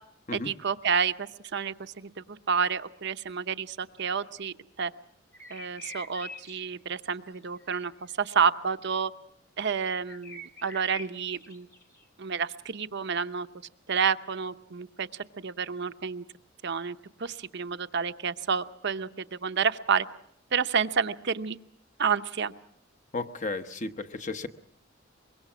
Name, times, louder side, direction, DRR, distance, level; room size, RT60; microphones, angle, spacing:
voice 1, 0.3-4.9 5.5-9.1 9.6-11.7 12.2-13.5 13.9-16.2 16.6-20.1 20.5-21.6 22.0-22.5, right 6 dB, 60° right, 11 dB, 0.8 m, -29 dB
sound 1, 5.3-6.6 6.9-7.1 7.6-8.1 10.1-12.1, left 3 dB, 15° left, 1.2 m, -45 dB
voice 2, 23.1-24.5, left 3 dB, 40° left, 9 dB, 1.0 m, -34 dB
24.0 x 22.5 x 6.2 m, 0.72 s
head